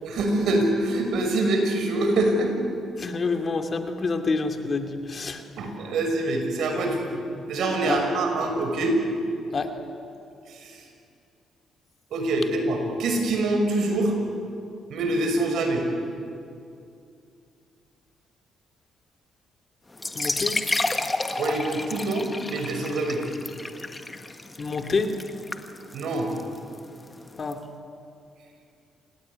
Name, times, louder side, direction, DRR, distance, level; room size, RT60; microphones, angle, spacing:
voice 1, 0.0-2.5 5.6-9.0 10.5-10.8 12.1-14.1 14.9-15.8 21.4-23.2 25.9-26.3, right 2 dB, 75° right, 3 dB, 6.1 m, -25 dB
voice 2, 3.0-5.4 7.8-8.0 9.5-9.7 20.1-20.6 24.6-25.1 27.4-27.6, left 4 dB, 40° left, 5 dB, 2.5 m, -27 dB
sound 1, 19.9-27.5, left 2 dB, 20° left, 1.8 m, -31 dB
28.0 x 18.0 x 9.8 m, 2.5 s
cardioid pair, 90°, 0 cm